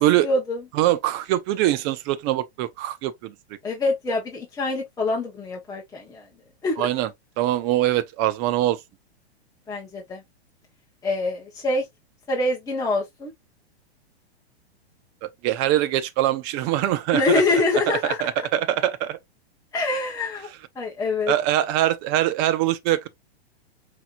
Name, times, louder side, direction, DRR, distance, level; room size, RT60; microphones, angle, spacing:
voice 1, 0.2-0.6 3.6-6.3 6.6-6.9 9.7-10.2 11.0-11.8 12.3-13.3 17.1-18.2 19.7-20.5 20.7-21.3, left 2 dB, 10° left, 1.1 m, -25 dB
voice 2, 0.7-3.3 6.8-7.1 7.4-8.8 15.2-17.4 18.0-19.2 21.3-23.1, right 13 dB, 35° right, 0.6 m, -23 dB
5.5 x 3.0 x 2.5 m
hypercardioid pair, 130°, 32 cm